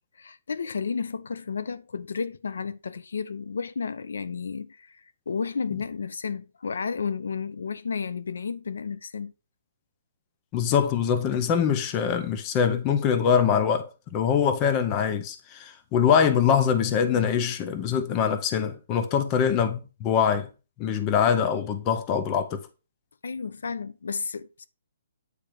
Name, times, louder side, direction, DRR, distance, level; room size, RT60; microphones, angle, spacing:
voice 1, 0.2-5.0 5.3-9.3 23.2-24.6, left 5 dB, 85° left, 0.6 m, -32 dB
voice 2, 10.5-20.5 20.8-22.6, left 7 dB, 20° left, 0.6 m, -23 dB
8.8 x 3.3 x 5.0 m
hypercardioid pair, 175°, 0 cm